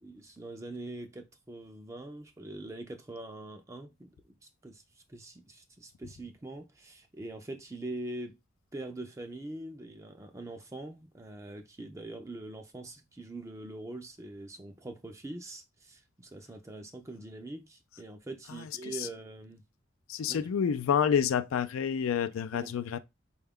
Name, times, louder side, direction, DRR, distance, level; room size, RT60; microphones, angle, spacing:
voice 1, 0.0-8.4 8.7-19.6 20.3-20.5 22.5-22.7, right 2 dB, 15° right, 0.4 m, -43 dB
voice 2, 20.1-23.0, left 7 dB, 90° left, 0.4 m, -28 dB
4.2 x 2.3 x 3.5 m
head